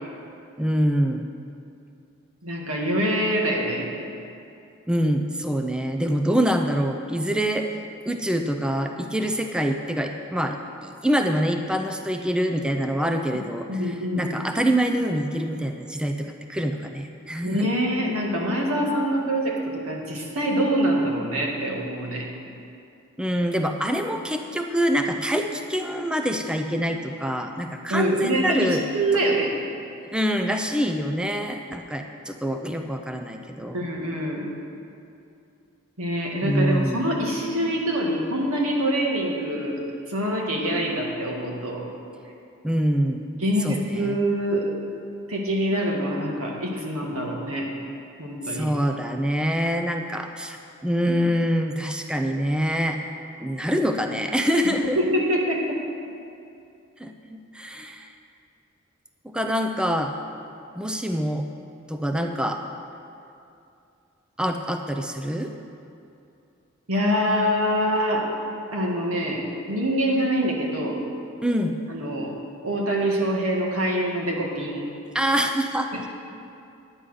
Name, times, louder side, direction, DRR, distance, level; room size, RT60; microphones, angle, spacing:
voice 1, 0.6-1.3 4.9-7.7 8.1-17.7 23.2-28.8 29.1-29.2 30.1-33.9 36.4-37.0 42.6-43.4 43.6-44.2 48.5-53.0 53.4-55.0 57.0-58.1 59.2-60.1 60.7-61.4 61.9-62.6 64.4-65.5 71.4-71.8 75.1-76.1, equal, 5° right, 4 dB, 0.4 m, -25 dB
voice 2, 2.4-3.9 13.7-14.3 17.4-19.6 19.8-22.3 27.9-29.5 33.7-34.5 36.0-39.8 40.1-41.9 43.4-44.7 45.3-47.7 48.2-48.7 55.0-55.8 66.9-68.3 68.7-71.0 71.9-72.3 72.6-74.8, equal, 85° right, -1 dB, 1.9 m, -25 dB
9.8 x 9.4 x 6.4 m, 2.6 s
head